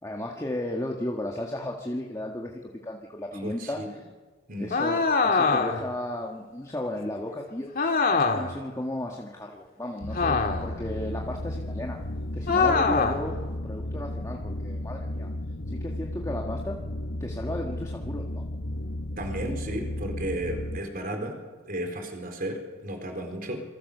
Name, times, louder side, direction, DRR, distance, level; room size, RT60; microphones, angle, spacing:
voice 1, 0.0-3.8 4.6-7.7 8.2-12.0 12.3-13.3 13.6-15.3 15.7-16.8 17.2-18.4, left 1 dB, 15° left, -1 dB, 1.8 m, -34 dB
voice 2, 3.4-3.9 4.5-4.7 19.2-21.4 21.7-23.6, right 1 dB, 45° right, 3 dB, 4.5 m, -33 dB
sound 1, 4.7-5.9 7.7-8.6 10.1-10.8 12.5-13.3, left 4 dB, 50° left, 2.2 m, -23 dB
sound 2, 10.0-20.8, left 1 dB, 65° left, 1.4 m, -34 dB
27.0 x 23.5 x 6.9 m, 1.4 s
head